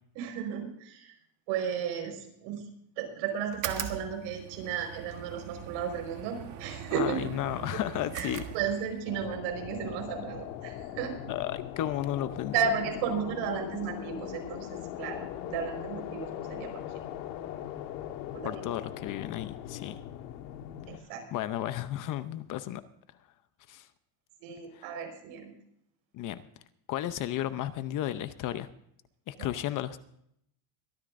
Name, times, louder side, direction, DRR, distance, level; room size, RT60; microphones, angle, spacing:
voice 1, 0.1-1.1 1.5-2.6 3.0-7.3 7.7-7.8 8.1-11.3 12.5-16.8 18.1-18.6 20.9-21.2 24.4-25.5 29.4-29.5, right 7 dB, 70° right, 3 dB, 4.9 m, -34 dB
sound 1, 3.5-9.1, right 9 dB, 40° right, 1.4 m, -41 dB
voice 2, 6.9-8.5 11.3-12.5 18.4-20.0 21.3-22.8 23.7-23.9 24.7-24.9 26.1-26.4 26.9-28.7 29.3-30.0, left 12 dB, 40° left, 12 dB, 0.7 m, -33 dB
sound 2, 9.1-21.0, left 11 dB, 90° left, 1.6 m, -40 dB
23.5 x 13.5 x 2.6 m, 0.72 s
cardioid pair, 150°, 48 cm